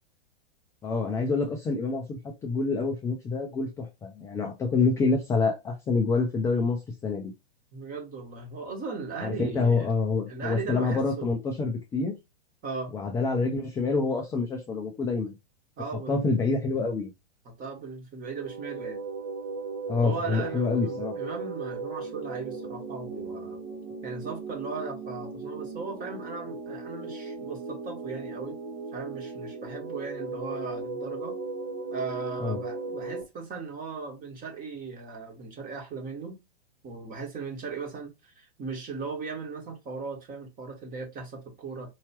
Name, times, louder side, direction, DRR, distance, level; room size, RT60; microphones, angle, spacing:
voice 1, 0.8-7.3 9.2-12.1 12.9-15.3 16.1-17.1 19.9-21.2 32.4-32.6, left 4 dB, 10° left, 0.4 m, -27 dB
voice 2, 7.7-9.9 10.3-11.4 12.6-12.9 15.8-16.2 17.4-19.0 20.0-23.6 24.0-28.6 28.9-31.4 31.9-36.4 36.8-41.9, right 4 dB, 25° right, 1.4 m, -37 dB
sound 1, 18.2-33.2, right 3 dB, 60° right, 1.3 m, -37 dB
4.6 x 2.8 x 2.9 m
hypercardioid pair, 110°, 33 cm